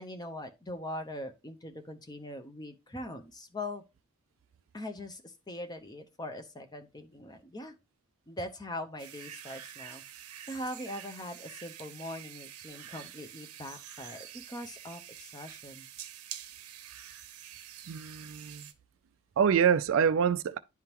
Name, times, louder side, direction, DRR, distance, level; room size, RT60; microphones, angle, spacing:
voice 1, 0.0-3.8 4.7-7.7 8.3-15.9, left 1 dB, 20° left, 0.7 m, -41 dB
sound 1, 9.0-18.7, right 10 dB, 90° right, 0.8 m, -47 dB
voice 2, 17.9-18.7 19.4-20.6, right 7 dB, 60° right, 0.3 m, -26 dB
10.5 x 3.6 x 2.9 m
head